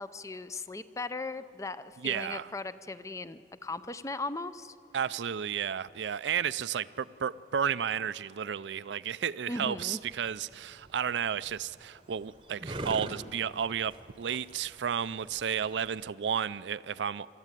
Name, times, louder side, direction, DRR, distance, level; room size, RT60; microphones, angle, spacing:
voice 1, 0.0-4.7 9.5-10.0, left 3 dB, 15° left, 0.5 m, -38 dB
voice 2, 2.0-2.5 4.9-17.3, right 8 dB, 85° right, 0.4 m, -32 dB
sound 1, 10.0-16.1, right 1 dB, 30° right, 0.9 m, -44 dB
27.5 x 13.5 x 9.1 m
head